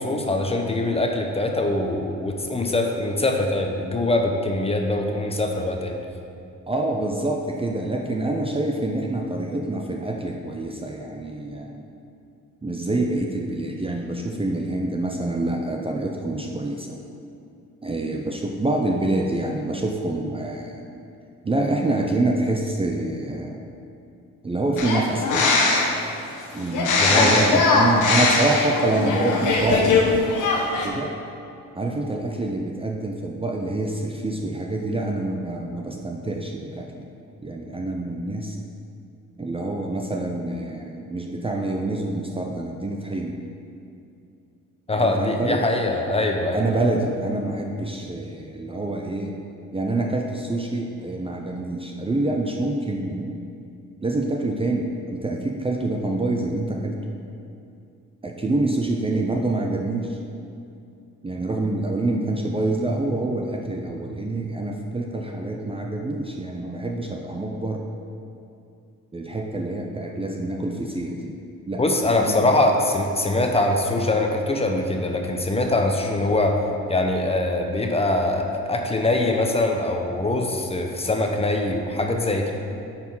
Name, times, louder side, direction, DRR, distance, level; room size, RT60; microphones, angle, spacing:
voice 1, 0.0-6.0 27.0-27.6 44.9-46.6 71.8-76.6 76.9-82.5, left 2 dB, 20° left, 3 dB, 0.8 m, -23 dB
voice 2, 6.7-11.9 12.6-17.0 17.8-20.8 21.4-23.6 24.4-25.5 26.5-30.5 30.8-31.1 31.7-37.1 37.4-38.6 39.4-43.4 44.9-45.7 46.0-46.1 46.5-49.4 49.7-53.4 54.0-57.0 58.2-60.2 61.2-67.8 69.1-71.3 71.7-71.8 72.3-72.5, right 2 dB, 20° right, 1 dB, 0.6 m, -26 dB
sound 1, 24.8-26.0 26.7-30.0 30.3-30.9, left 3 dB, 80° left, 1.3 m, -20 dB
8.7 x 4.3 x 5.5 m, 2.6 s
cardioid pair, 90°, 30 cm